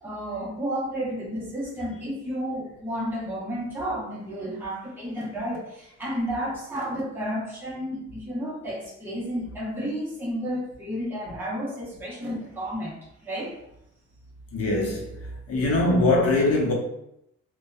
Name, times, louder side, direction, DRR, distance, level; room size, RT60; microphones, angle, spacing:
voice 1, 0.0-13.6, equal, 5° right, 0.9 m, -32 dB
voice 2, 14.5-15.2 15.5-16.7, left 2 dB, 50° left, 0.8 m, -22 dB
2.6 x 2.3 x 2.3 m
cardioid pair, 90°, 30 cm